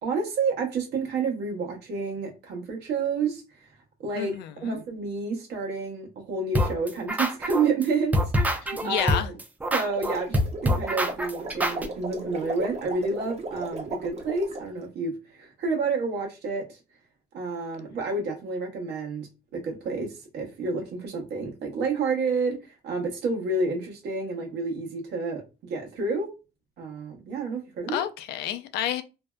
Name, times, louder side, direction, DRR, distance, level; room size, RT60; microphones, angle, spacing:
voice 1, 0.0-3.4 4.0-4.3 4.6-9.4 9.7-16.8 17.3-26.3 26.8-28.0, right 4 dB, 80° right, 0.9 m, -29 dB
voice 2, 4.2-4.8 8.8-9.3 27.9-29.0, left 11 dB, 75° left, 0.4 m, -30 dB
sound 1, 6.5-7.9 8.1-11.9, equal, 10° right, 0.3 m, -25 dB
sound 2, 9.9-14.7, right 2 dB, 40° right, 0.6 m, -36 dB
2.6 x 2.1 x 2.2 m
cardioid pair, 110°, 17 cm